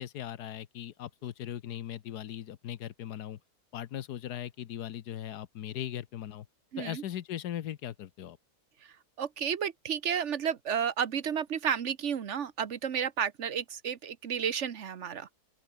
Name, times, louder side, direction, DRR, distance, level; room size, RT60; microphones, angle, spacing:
voice 1, 0.0-3.4 3.7-6.5 6.8-8.4, left 11 dB, 85° left, 1.5 m, -39 dB
voice 2, 6.7-7.0 9.2-15.3, right 8 dB, 50° right, 1.2 m, -32 dB
open air
omnidirectional pair, 1.7 m